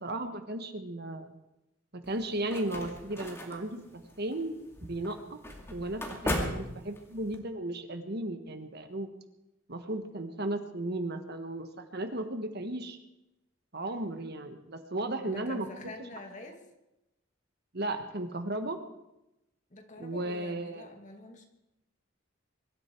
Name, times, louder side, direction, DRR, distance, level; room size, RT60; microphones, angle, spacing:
voice 1, 0.0-1.3 1.9-4.5 4.8-5.4 5.7-9.1 9.7-13.0 13.7-15.7 17.7-18.8 20.0-20.9, right 1 dB, 55° right, 7 dB, 1.5 m, -35 dB
sound 1, 2.0-7.4, left 1 dB, 15° left, 2.5 m, -38 dB
voice 2, 15.2-16.6 19.7-21.4, left 2 dB, 35° left, 3 dB, 2.4 m, -46 dB
23.5 x 13.0 x 4.6 m, 0.90 s
head